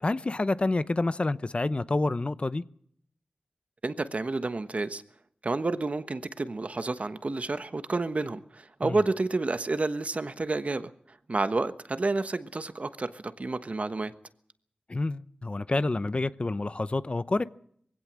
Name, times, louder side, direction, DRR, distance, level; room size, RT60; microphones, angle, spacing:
voice 1, 0.0-2.6 8.8-9.0 14.9-17.4, left 2 dB, 40° left, 0.8 m, -28 dB
voice 2, 3.8-5.0 5.4-10.9 11.3-14.1, right 3 dB, 50° right, 1.2 m, -30 dB
21.5 x 16.5 x 7.5 m
wide cardioid pair, 65°, 3 cm